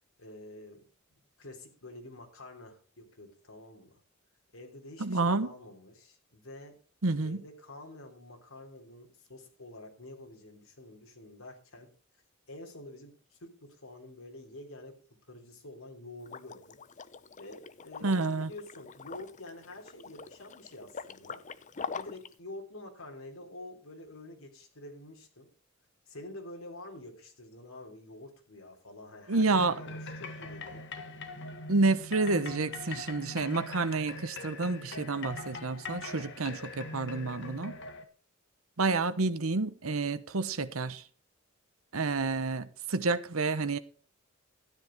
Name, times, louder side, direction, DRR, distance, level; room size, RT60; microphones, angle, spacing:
voice 1, 0.2-4.0 4.5-6.7 7.2-11.9 12.5-15.0 15.3-16.8 17.4-21.4 21.9-25.5 26.1-30.9, left 1 dB, 80° left, 3.3 m, -48 dB
voice 2, 5.0-5.5 7.0-7.4 18.0-18.5 29.3-29.8 31.7-37.8 38.8-41.0 41.9-43.8, right 3 dB, 90° right, 1.0 m, -29 dB
Liquid, 16.2-22.3, left 5 dB, 35° left, 0.7 m, -44 dB
sound 1, 29.5-38.0, left 3 dB, 60° left, 1.8 m, -42 dB
13.0 x 10.0 x 4.6 m
head